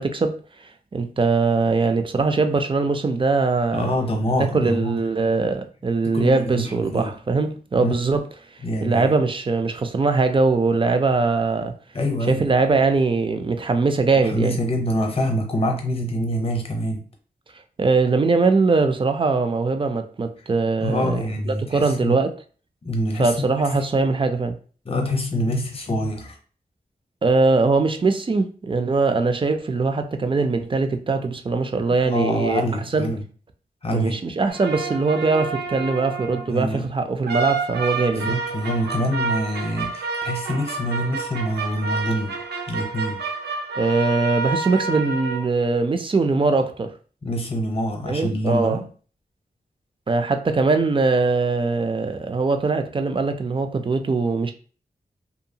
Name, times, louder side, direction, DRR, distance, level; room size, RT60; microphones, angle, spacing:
voice 1, 0.0-3.9 4.4-8.2 8.8-11.7 12.3-14.6 17.8-22.3 23.2-24.6 27.2-32.6 32.9-33.1 33.9-38.4 43.7-46.9 48.1-48.8 50.1-54.5, right 3 dB, 30° right, 0.3 m, -21 dB
voice 2, 3.7-5.0 6.1-7.1 7.8-8.0 8.6-9.1 11.9-12.5 14.2-17.0 20.8-22.2 22.8-23.3 23.7-23.8 24.8-26.4 32.1-33.2 33.8-34.2 36.3-36.8 38.1-42.4 42.7-43.2 47.2-48.8, equal, 35° left, 0.7 m, -25 dB
sound 1, 34.5-36.5 37.3-45.4, right 4 dB, 85° right, 0.6 m, -29 dB
2.7 x 2.2 x 2.7 m
wide cardioid pair, 100°, 17 cm